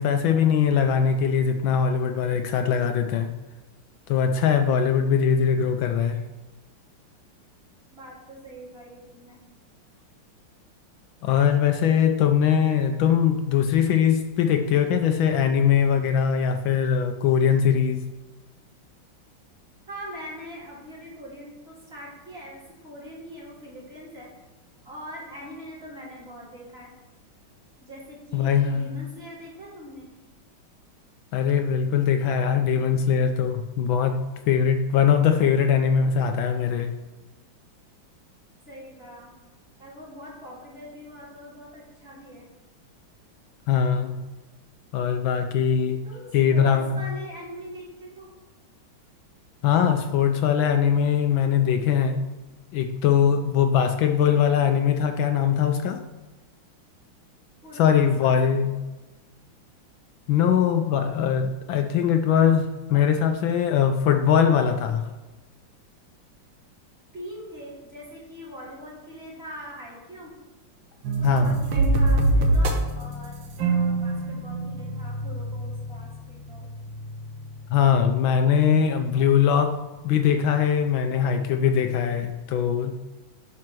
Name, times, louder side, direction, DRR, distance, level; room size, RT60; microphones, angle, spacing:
voice 1, 0.0-3.3 4.1-6.2 11.2-18.1 28.3-28.9 31.3-36.9 43.7-44.2 44.9-46.0 46.3-47.0 49.6-52.3 52.7-56.0 57.7-58.7 60.3-65.0 71.2-71.6 77.7-79.8 80.0-82.9, left 7 dB, 75° left, 6 dB, 1.3 m, -21 dB
voice 2, 7.9-9.4 19.9-24.3 24.8-26.9 27.8-30.1 38.7-39.3 39.8-42.5 46.0-48.3 57.6-58.8 67.1-70.4 71.2-76.7, equal, 30° right, -7 dB, 3.5 m, -42 dB
sound 1, 71.0-77.8, right 2 dB, 70° right, 1.8 m, -25 dB
9.7 x 4.3 x 6.1 m, 1.2 s
omnidirectional pair, 2.3 m